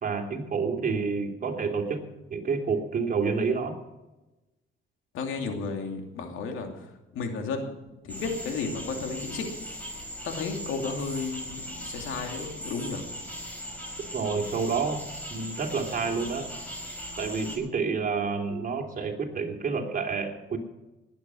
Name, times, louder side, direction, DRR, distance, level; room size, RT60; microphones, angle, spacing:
voice 1, 0.0-2.0 2.3-3.7 14.1-15.0 15.3-16.5 17.2-20.6, right 5 dB, 45° right, 3 dB, 3.1 m, -29 dB
voice 2, 5.1-6.9 7.1-7.7 8.0-9.5 10.2-13.0, left 4 dB, 85° left, 4 dB, 2.7 m, -33 dB
sound 1, 8.1-17.6, equal, 10° left, 5.6 m, -39 dB
19.5 x 9.2 x 6.3 m, 1.0 s
cardioid pair, 90°, 20 cm